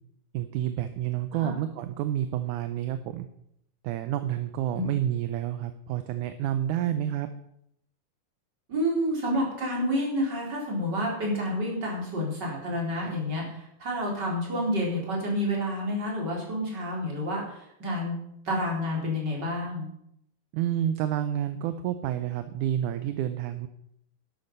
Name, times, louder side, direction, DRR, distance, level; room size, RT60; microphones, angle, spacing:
voice 1, 0.3-3.3 3.8-7.3 20.5-23.7, right 11 dB, 75° right, 10 dB, 2.1 m, -29 dB
voice 2, 8.7-18.2 18.4-19.9, equal, 30° right, -3 dB, 4.6 m, -29 dB
12.0 x 12.0 x 5.4 m, 0.75 s
omnidirectional pair, 3.8 m